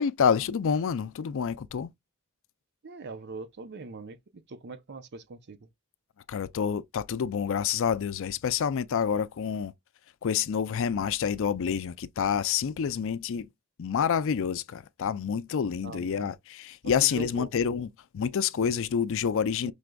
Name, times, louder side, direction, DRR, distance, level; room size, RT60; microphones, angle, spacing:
voice 1, 0.0-1.9 6.3-9.7 10.2-13.5 13.8-17.9 18.1-19.7, left 7 dB, 65° left, 0.4 m, -28 dB
voice 2, 2.8-5.7 15.8-16.3 16.8-17.5 19.6-19.7, right 4 dB, 55° right, 0.6 m, -42 dB
6.2 x 3.4 x 2.2 m
head